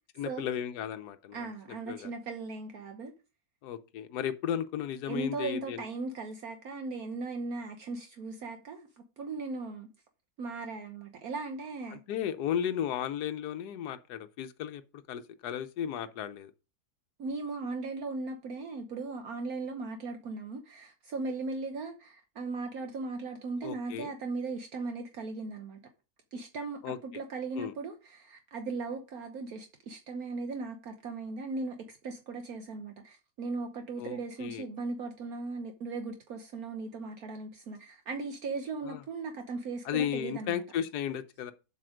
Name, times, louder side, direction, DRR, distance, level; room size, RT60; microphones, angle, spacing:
voice 1, 0.2-1.5 1.9-2.1 3.6-5.8 11.9-14.8 15.1-16.5 23.6-24.1 26.8-27.0 27.6-27.7 34.0-34.7 38.8-39.0 39.8-41.5, left 9 dB, 85° left, 1.3 m, -34 dB
voice 2, 1.3-3.1 5.1-8.9 9.2-9.9 10.4-12.0 17.2-25.8 26.3-40.6, right 3 dB, 65° right, 1.4 m, -38 dB
7.6 x 6.2 x 5.0 m
omnidirectional pair, 1.7 m